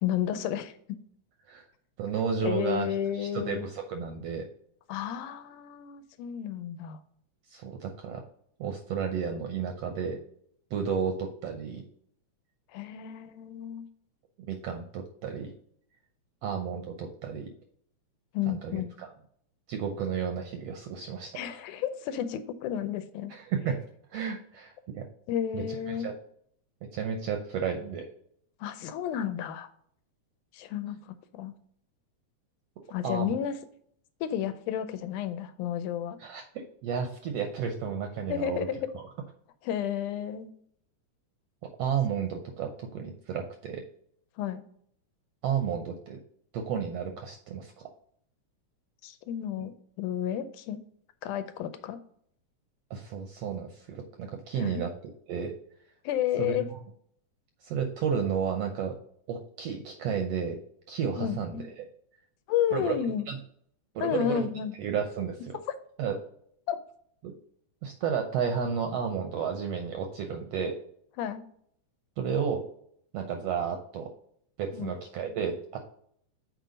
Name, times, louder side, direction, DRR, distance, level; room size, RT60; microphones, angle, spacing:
voice 1, 0.0-0.7 2.4-3.7 4.9-7.0 12.7-13.9 18.3-18.9 21.4-23.3 25.3-26.1 28.6-29.7 30.5-31.6 32.9-33.6 34.2-36.2 38.3-38.9 39.6-40.5 44.4-44.6 49.0-50.8 51.2-52.0 54.6-54.8 56.1-56.7 61.2-61.6 62.5-63.3 64.0-64.7 66.7-66.8 71.2-71.4 74.7-75.0, left 10 dB, 85° left, 10 dB, 2.1 m, -32 dB
voice 2, 2.0-4.5 7.5-8.2 8.6-10.2 10.7-11.8 14.5-15.5 16.4-17.5 18.5-19.1 19.7-21.6 23.3-23.8 24.1-25.1 25.5-26.2 26.9-28.1 33.0-33.4 36.2-38.7 38.9-39.0 41.8-43.8 45.4-46.2 46.5-47.9 49.6-49.7 52.9-54.9 55.3-55.5 56.4-56.8 57.6-59.0 59.3-60.6 60.9-61.9 62.7-63.0 63.3-63.4 63.9-64.5 64.8-65.6 66.0-66.2 67.2-67.3 67.8-70.8 72.2-72.7 73.1-74.1 74.6-75.8, right 7 dB, 75° right, 4 dB, 1.5 m, -32 dB
6.6 x 4.6 x 5.1 m, 0.65 s
omnidirectional pair, 3.6 m